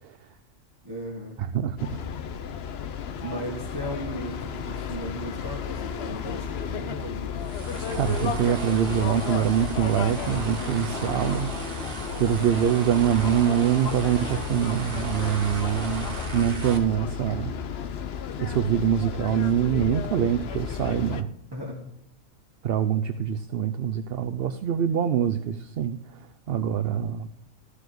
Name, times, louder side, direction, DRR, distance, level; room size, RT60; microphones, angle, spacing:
voice 1, 0.8-1.5 3.2-7.5 21.5-21.8, equal, 20° right, -2 dB, 1.6 m, -36 dB
voice 2, 1.4-2.0 7.9-11.9 12.2-17.5 18.4-21.3 22.6-27.3, right 9 dB, 60° right, 8 dB, 0.7 m, -25 dB
sound 1, 1.8-21.2, left 7 dB, 60° left, 0.9 m, -33 dB
sound 2, 7.4-16.8, right 3 dB, 45° right, 1.8 m, -36 dB
14.5 x 4.9 x 7.7 m, 0.76 s
omnidirectional pair, 1.3 m